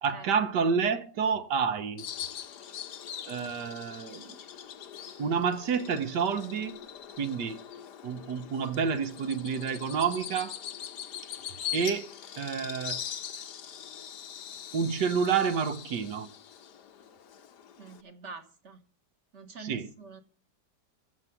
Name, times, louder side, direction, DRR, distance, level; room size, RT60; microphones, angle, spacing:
voice 1, 0.0-2.1 3.2-4.4 5.2-6.9 7.2-7.6 8.0-10.6 11.7-12.1 12.4-13.0 14.7-16.3 19.6-19.8, right 6 dB, 70° right, 1.6 m, -29 dB
Bird vocalization bird call bird song, 2.0-18.0, left 9 dB, 70° left, 1.5 m, -42 dB
voice 2, 17.8-18.8 19.3-20.2, right 5 dB, 40° right, 1.7 m, -45 dB
14.0 x 7.6 x 5.8 m
omnidirectional pair, 1.9 m